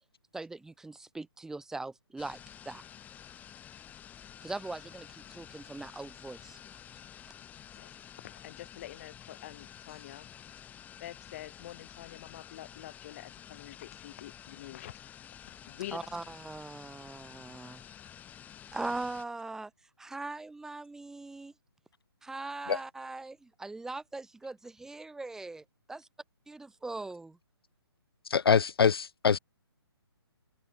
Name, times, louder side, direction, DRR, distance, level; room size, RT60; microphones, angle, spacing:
voice 1, 0.3-2.4 2.6-2.8 4.4-6.6 15.9-17.8 18.7-19.7 20.0-21.5 22.2-26.1 26.5-27.4, right 3 dB, 5° right, 1.5 m, -40 dB
sound 1, 2.2-19.2, left 10 dB, 10° left, 1.6 m, -50 dB
voice 2, 8.2-10.3 11.0-15.0 15.4-16.0, left 14 dB, 35° left, 1.6 m, -46 dB
voice 3, 28.3-29.4, left 6 dB, 65° left, 0.7 m, -24 dB
figure-of-eight pair, 145°, 14 cm